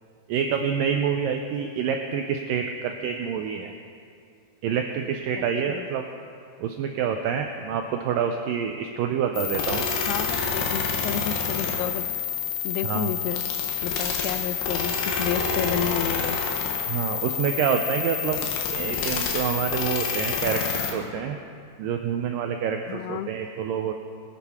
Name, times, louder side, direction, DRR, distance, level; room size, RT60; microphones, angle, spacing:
voice 1, 0.3-3.7 4.6-6.0 6.6-9.8 12.9-13.1 16.9-21.4 21.8-23.9, right 7 dB, 85° right, 4 dB, 1.9 m, -27 dB
voice 2, 5.4-5.9 10.0-12.1 12.6-13.5 13.8-16.4 22.9-23.3, left 10 dB, 90° left, 12 dB, 2.6 m, -31 dB
sound 1, 9.3-20.9, left 6 dB, 70° left, 3.1 m, -28 dB
21.0 x 8.9 x 4.3 m, 2.4 s
omnidirectional pair, 4.6 m